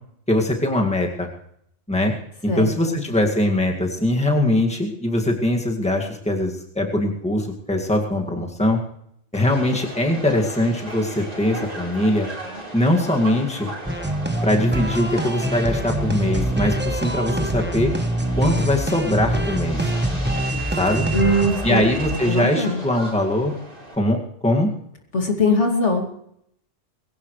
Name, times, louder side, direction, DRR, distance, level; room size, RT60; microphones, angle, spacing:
voice 1, 0.3-1.3 1.9-2.1 2.4-8.8 9.3-12.3 12.7-13.7 14.4-17.9 18.4-19.9 20.8-21.1 21.6-23.5 24.0-24.7, left 1 dB, 5° left, 1 dB, 2.1 m, -21 dB
voice 2, 2.5-2.9 21.1-21.8 22.3-22.8 25.1-26.0, left 1 dB, 70° left, 2 dB, 3.0 m, -21 dB
Subway metro underground, 9.3-24.0, right 2 dB, 45° right, 4.1 m, -35 dB
sound 1, 13.9-21.5, right 1 dB, 10° right, 1.0 m, -25 dB
sound 2, 16.0-22.3, equal, 30° right, 2.8 m, -34 dB
21.0 x 17.0 x 3.3 m, 0.72 s
omnidirectional pair, 1.2 m